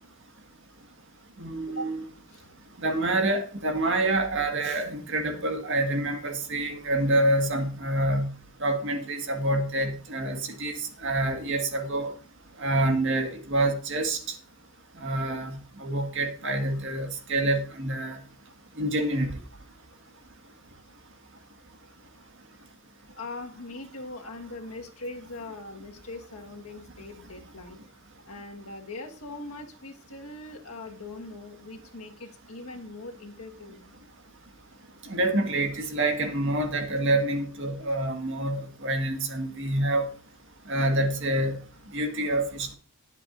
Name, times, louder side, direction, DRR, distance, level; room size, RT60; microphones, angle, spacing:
voice 1, 1.4-2.0 2.8-8.3 8.6-10.7 11.0-12.1 12.6-14.2 15.0-18.2 18.8-19.4 35.1-40.1 40.7-41.6 41.9-42.8, right 1 dB, 55° right, 4 dB, 1.8 m, -27 dB
voice 2, 23.1-27.8 28.2-33.9 35.8-35.9, left 2 dB, 80° left, 2 dB, 1.7 m, -41 dB
19.5 x 7.4 x 2.7 m, 0.39 s
head